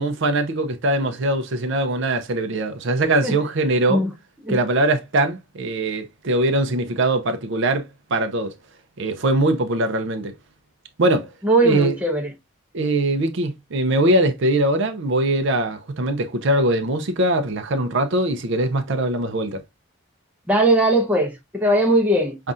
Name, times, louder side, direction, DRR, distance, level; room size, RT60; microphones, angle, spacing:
voice 1, 0.0-4.1 4.5-8.5 9.0-10.3 11.0-11.3 11.6-11.9 12.7-19.6, right 1 dB, 55° right, 0.5 m, -21 dB
voice 2, 11.4-12.3 20.5-22.4, right 1 dB, 5° right, 0.7 m, -19 dB
5.4 x 2.4 x 2.4 m
head